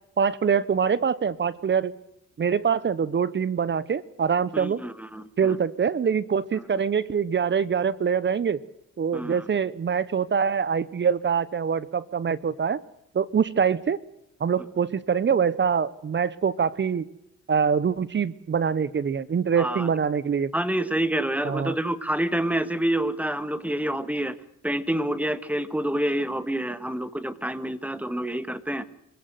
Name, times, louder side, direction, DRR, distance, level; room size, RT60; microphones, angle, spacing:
voice 1, 0.2-1.9 2.4-4.8 5.4-8.6 9.0-12.8 13.1-14.0 14.4-17.0 17.5-20.5 21.4-21.7, right 6 dB, 40° right, 19 dB, 1.0 m, -24 dB
voice 2, 4.5-5.6 9.1-9.4 19.6-19.9 20.5-24.4 24.6-28.8, right 1 dB, 5° right, 13 dB, 1.8 m, -27 dB
25.5 x 16.5 x 7.9 m, 0.81 s
cardioid pair, 90°, 30 cm